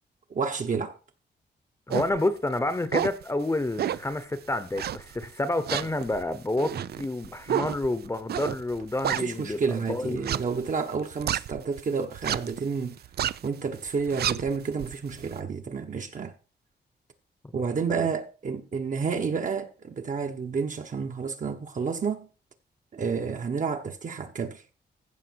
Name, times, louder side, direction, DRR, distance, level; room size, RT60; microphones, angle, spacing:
voice 1, 0.3-1.0 6.7-6.8 9.2-13.0 13.4-16.3 17.5-22.3 22.9-24.6, right 5 dB, 45° right, 1.3 m, -30 dB
voice 2, 1.9-9.6 9.9-10.3 17.5-17.6 17.9-18.1, left 2 dB, 15° left, 1.0 m, -29 dB
sound 1, 1.9-2.2 2.7-3.2 3.8-4.1 4.8-5.3 5.7-9.7 10.1-11.8 12.1-12.6 13.0-13.5 13.9-15.3, right 10 dB, 65° right, 0.5 m, -30 dB
15.0 x 6.2 x 4.7 m
wide cardioid pair, 120°, 18 cm